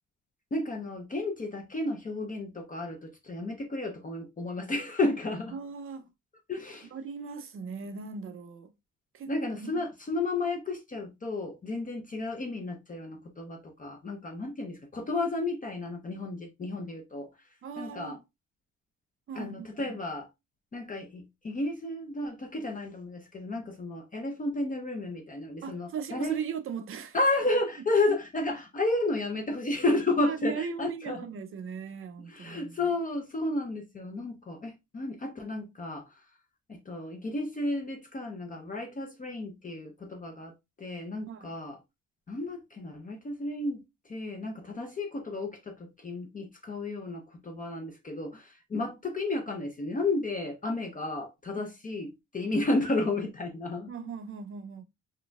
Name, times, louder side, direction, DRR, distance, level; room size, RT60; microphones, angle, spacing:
voice 1, 0.5-5.6 6.5-6.9 9.3-17.3 17.8-18.2 19.3-20.3 20.7-26.4 27.1-31.3 32.3-36.3 36.7-41.8 42.3-53.9, left 2 dB, 25° left, 0.5 m, -32 dB
voice 2, 5.5-6.1 6.9-8.7 9.1-9.7 17.6-18.2 19.3-20.0 25.6-27.2 30.2-32.8 41.3-41.5 51.6-51.7 53.9-54.8, right 6 dB, 40° right, 0.5 m, -38 dB
4.0 x 2.5 x 2.2 m
wide cardioid pair, 175°, 32 cm